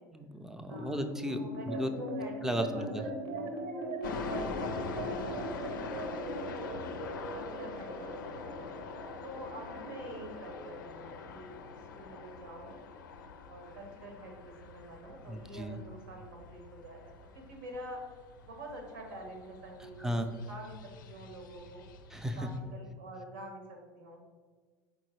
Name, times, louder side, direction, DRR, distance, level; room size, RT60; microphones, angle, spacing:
voice 1, 0.1-1.9 2.4-3.0 15.3-15.8 20.0-20.3 22.1-22.5, equal, 5° right, 7 dB, 0.4 m, -35 dB
sound 1, 0.7-13.3, right 2 dB, 60° right, 0.9 m, -41 dB
voice 2, 1.3-2.9 3.2-3.5 3.8-6.8 7.3-8.7 9.2-11.5 12.0-12.8 13.4-17.0 17.3-18.0 18.4-20.7 21.0-21.8 22.3-24.3, right 1 dB, 80° right, 1 dB, 1.2 m, -47 dB
sound 2, 4.0-22.6, left 5 dB, 85° left, 0.4 m, -44 dB
4.4 x 3.8 x 3.1 m, 1.5 s
hypercardioid pair, 90°, 10 cm